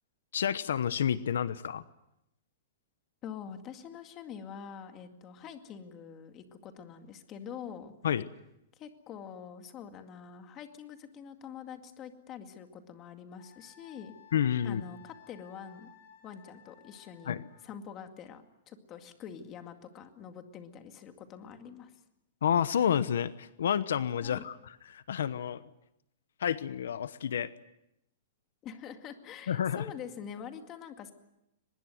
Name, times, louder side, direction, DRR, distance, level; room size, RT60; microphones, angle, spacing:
voice 1, 0.3-1.8 8.0-8.3 14.3-14.8 17.3-17.4 22.4-24.6 24.9-25.6 26.4-27.5 29.5-29.9, left 8 dB, 85° left, 14 dB, 1.0 m, -29 dB
voice 2, 3.2-7.9 8.8-14.1 14.6-15.9 16.2-17.3 17.6-22.0 24.2-24.4 28.6-31.1, left 7 dB, 25° left, 6 dB, 2.2 m, -45 dB
Wind instrument woodwind instrument, 13.4-17.7, left 10 dB, 50° left, 7.6 m, -57 dB
24.0 x 21.5 x 7.9 m, 0.83 s
hypercardioid pair, 160°, 0 cm